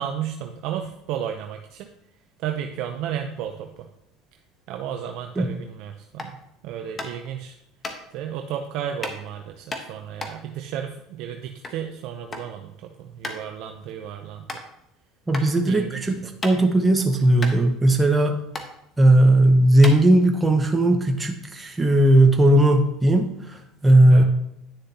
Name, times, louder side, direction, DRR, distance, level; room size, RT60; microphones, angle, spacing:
voice 1, 0.0-1.9 2.4-3.9 4.7-6.4 6.6-7.6 8.1-14.4 15.6-16.3 24.1-24.2, right 9 dB, 65° right, 4 dB, 0.6 m, -33 dB
sound 1, 6.1-6.4 7.0-7.3 7.8-8.0 9.0-9.2 9.7-11.8 12.1-12.5 12.8-12.9 13.2-13.4 13.9-14.0 14.5-14.6 15.3-15.5 15.9-16.9 17.1-17.2 17.4-18.2 18.5-18.7 19.3-19.4 19.8-20.5, left 2 dB, 20° left, 1.2 m, -34 dB
voice 2, 15.3-18.4 19.0-24.2, right 1 dB, 15° right, 4 dB, 0.9 m, -17 dB
9.7 x 6.6 x 2.9 m, 0.80 s
supercardioid pair, 110°, 0 cm